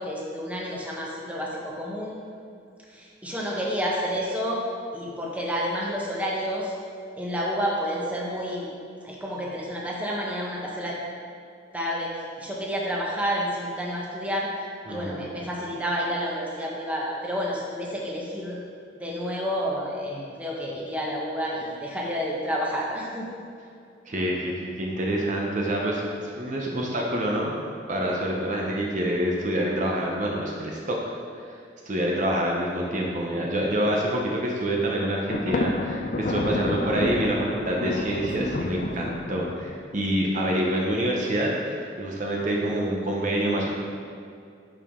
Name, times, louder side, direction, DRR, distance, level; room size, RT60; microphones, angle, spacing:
voice 1, 0.0-2.2 2.9-4.6 4.9-6.7 7.2-8.7 9.0-10.9 11.7-12.1 12.4-14.5 14.9-18.6 19.0-23.3, equal, 10° right, -4 dB, 1.1 m, -29 dB
voice 2, 14.9-15.3 24.1-26.0 26.4-27.6 27.9-31.0 31.4-31.5 31.9-43.7, right 1 dB, 45° right, -2 dB, 0.8 m, -26 dB
Thunder, 35.3-39.9, left 2 dB, 45° left, 0.5 m, -30 dB
10.5 x 4.8 x 3.7 m, 2.4 s
head